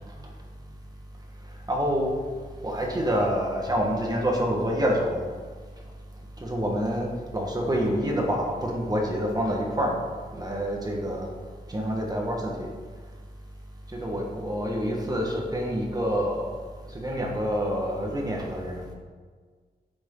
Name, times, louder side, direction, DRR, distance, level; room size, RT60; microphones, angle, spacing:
voice 1, 1.7-2.2 2.6-5.3 6.4-10.0 10.3-11.3 11.7-12.7 13.9-16.4 16.9-18.9, equal, 20° right, -1 dB, 1.5 m, -27 dB
9.8 x 8.7 x 3.9 m, 1.5 s
wide cardioid pair, 145°, 17 cm